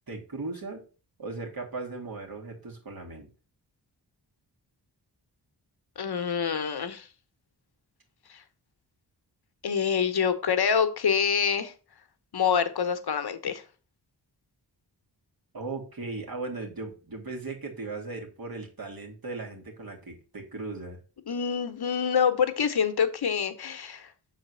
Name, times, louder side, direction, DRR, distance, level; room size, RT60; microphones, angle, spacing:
voice 1, 0.1-0.8 1.2-3.3 15.5-21.0, right 3 dB, 55° right, 2.6 m, -37 dB
voice 2, 6.0-7.1 9.6-11.7 12.3-13.6 21.3-24.1, left 7 dB, 60° left, 1.1 m, -26 dB
6.5 x 4.1 x 5.6 m
cardioid pair, 50°, 43 cm